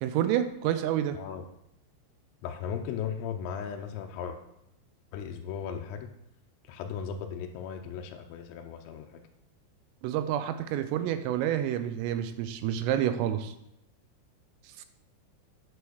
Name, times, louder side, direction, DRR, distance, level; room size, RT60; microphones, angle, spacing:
voice 1, 0.0-1.2 10.0-13.5 14.8-14.9, right 11 dB, 85° right, 10 dB, 3.3 m, -28 dB
voice 2, 2.4-4.4 5.1-6.1 6.7-9.2, left 7 dB, 85° left, 3 dB, 3.4 m, -37 dB
10.0 x 4.7 x 6.3 m, 0.79 s
omnidirectional pair, 5.9 m